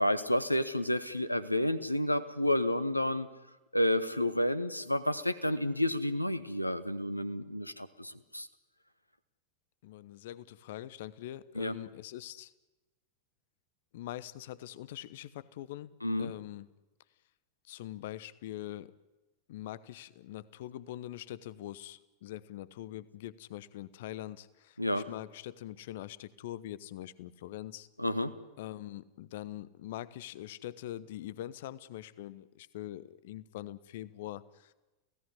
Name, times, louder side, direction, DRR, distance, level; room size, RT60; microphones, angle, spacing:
voice 1, 0.0-3.3 3.7-8.5 11.5-11.8 16.0-16.3 24.8-25.0 28.0-28.3, left 1 dB, 85° left, 14 dB, 1.4 m, -30 dB
voice 2, 9.8-12.5 13.9-15.9 16.2-16.7 17.7-18.9 19.5-27.9 28.6-34.7, left 13 dB, 55° left, 19 dB, 0.9 m, -43 dB
29.5 x 17.0 x 9.9 m, 1.1 s
figure-of-eight pair, 90°, 0 cm